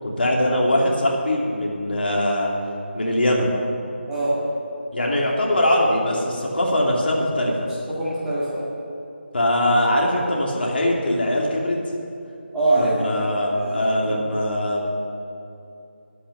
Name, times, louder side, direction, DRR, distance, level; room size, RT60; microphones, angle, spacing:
voice 1, 0.0-2.5 2.9-3.6 4.9-7.5 9.3-11.8 12.7-14.9, left 1 dB, 60° left, -2 dB, 2.9 m, -21 dB
voice 2, 4.1-4.4 7.9-8.7 12.5-12.9 13.2-14.2, right 2 dB, 5° right, -11 dB, 1.9 m, -24 dB
10.0 x 8.5 x 10.0 m, 2.8 s
figure-of-eight pair, 165°, 6 cm